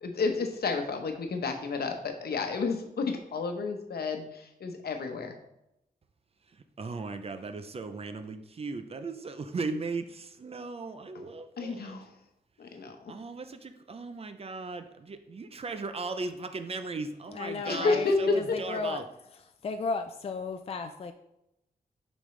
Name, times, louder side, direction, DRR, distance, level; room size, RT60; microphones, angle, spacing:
voice 1, 0.0-5.4 11.1-11.2 11.6-12.1 12.6-13.1 17.6-18.6, left 4 dB, 80° left, 4 dB, 0.9 m, -30 dB
voice 2, 6.8-12.0 13.1-19.0, right 3 dB, 40° right, 8 dB, 0.5 m, -37 dB
voice 3, 17.3-19.0 19.6-21.1, left 4 dB, 40° left, 7 dB, 0.4 m, -34 dB
6.9 x 5.2 x 3.2 m, 0.84 s
wide cardioid pair, 160°, 16 cm